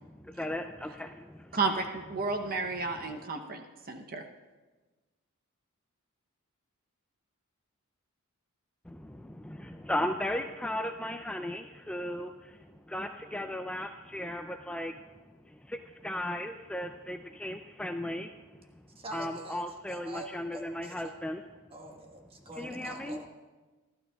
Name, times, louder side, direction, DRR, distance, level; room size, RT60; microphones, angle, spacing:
voice 1, 0.0-1.6 8.9-15.0 15.5-18.4 19.1-21.4 22.5-23.3, left 1 dB, 5° left, 5 dB, 0.3 m, -36 dB
voice 2, 1.5-4.2, right 4 dB, 40° right, 5 dB, 0.8 m, -32 dB
voice 3, 19.0-21.1 21.7-23.2, right 1 dB, 25° right, 2 dB, 1.4 m, -45 dB
28.0 x 12.5 x 2.3 m, 1.3 s
head